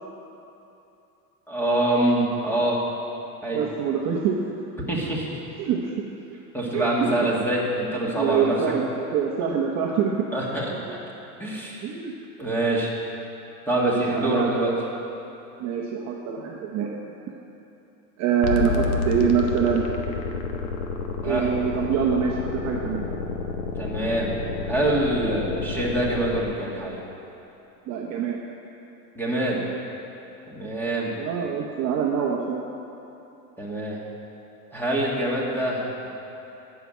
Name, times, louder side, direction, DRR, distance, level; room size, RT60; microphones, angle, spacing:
voice 1, 1.5-2.8 3.4-3.6 4.9-5.4 6.5-8.6 10.3-10.7 11.4-11.8 12.4-12.9 13.7-14.7 21.2-21.5 23.8-24.3 24.7-27.0 29.2-29.6 30.5-31.1 33.6-34.0 34.7-36.1, right 1 dB, 5° left, -5 dB, 2.2 m, -25 dB
voice 2, 3.5-4.4 5.6-6.0 6.7-7.4 8.1-10.3 10.7-11.0 11.8-12.1 13.8-14.8 15.6-16.9 18.2-19.9 21.2-23.0 27.9-28.4 31.2-32.7, right 7 dB, 35° right, -1 dB, 1.0 m, -25 dB
sound 1, 18.4-26.4, left 4 dB, 70° left, 1.4 m, -29 dB
12.0 x 6.0 x 9.3 m, 2.9 s
supercardioid pair, 135°, 48 cm